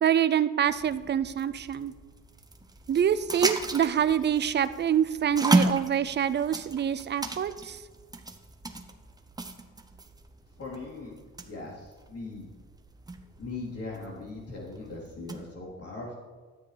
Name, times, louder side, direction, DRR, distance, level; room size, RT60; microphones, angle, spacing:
voice 1, 0.0-1.9 2.9-7.8, right 9 dB, 35° right, 14 dB, 0.5 m, -26 dB
sound 1, 0.7-15.5, right 2 dB, 15° right, 0.8 m, -34 dB
voice 2, 10.6-11.2 11.4-12.5 13.4-16.1, left 3 dB, 50° left, -5 dB, 3.8 m, -39 dB
13.0 x 9.5 x 3.4 m, 1.5 s
cardioid pair, 90°, 30 cm